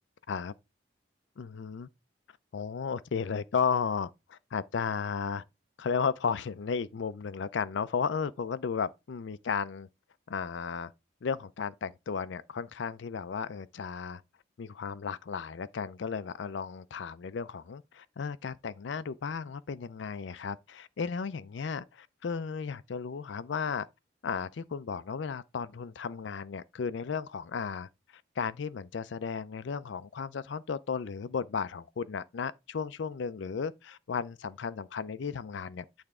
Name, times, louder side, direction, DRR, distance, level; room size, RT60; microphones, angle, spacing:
voice 1, 1.4-1.9 2.5-4.1 4.5-5.4 5.8-9.9 10.3-10.9 11.2-14.2 14.6-23.9 24.2-27.9 28.4-35.8, left 6 dB, 70° left, 0.4 m, -34 dB
8.8 x 3.4 x 4.8 m
head